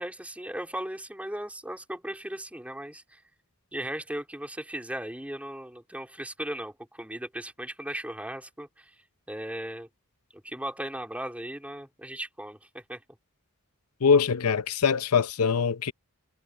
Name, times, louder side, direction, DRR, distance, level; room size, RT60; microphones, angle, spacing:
voice 1, 0.0-3.2 3.7-8.9 9.3-9.9 10.3-13.0, right 1 dB, 5° right, 3.4 m, -37 dB
voice 2, 14.0-15.9, left 6 dB, 90° left, 0.7 m, -23 dB
head